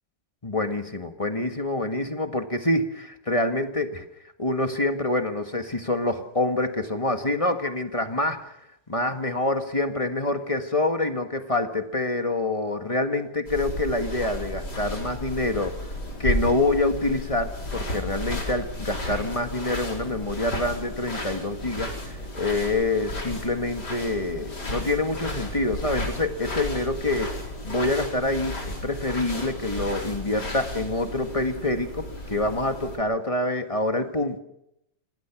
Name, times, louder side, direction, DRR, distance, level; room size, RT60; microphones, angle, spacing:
voice 1, 0.4-4.0 4.4-8.5 8.9-15.8 16.2-21.9 22.3-27.3 27.6-34.4, left 2 dB, 20° left, 6 dB, 1.6 m, -26 dB
sound 1, 13.5-33.0, left 1 dB, 60° left, 5.3 m, -33 dB
28.0 x 19.0 x 6.1 m, 0.81 s
omnidirectional pair, 2.0 m